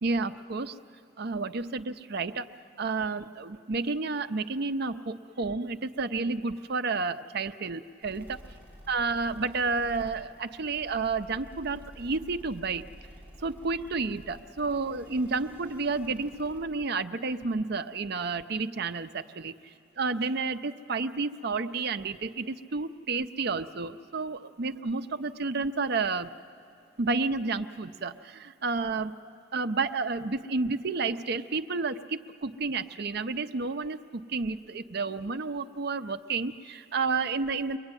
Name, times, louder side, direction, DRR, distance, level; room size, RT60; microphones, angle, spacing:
voice 1, 0.0-0.8 1.2-2.5 2.8-8.4 8.9-12.9 13.4-19.5 20.0-26.3 27.0-29.2 29.5-37.8, right 4 dB, 55° right, 11 dB, 0.6 m, -31 dB
sound 1, 8.0-16.6, equal, 10° right, 6.6 m, -50 dB
23.5 x 21.5 x 9.7 m, 2.5 s
head